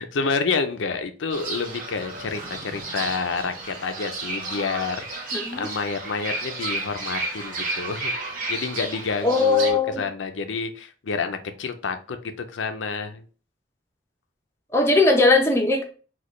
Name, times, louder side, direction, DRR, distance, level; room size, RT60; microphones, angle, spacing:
voice 1, 0.0-13.2, left 4 dB, 85° left, 8 dB, 0.5 m, -29 dB
Fowl / Bird, 1.3-9.7, right 2 dB, 45° right, 0.9 m, -32 dB
voice 2, 5.3-5.7 9.2-10.0 14.7-15.8, left 3 dB, 15° left, 1 dB, 0.6 m, -19 dB
4.0 x 2.3 x 3.1 m, 0.37 s
head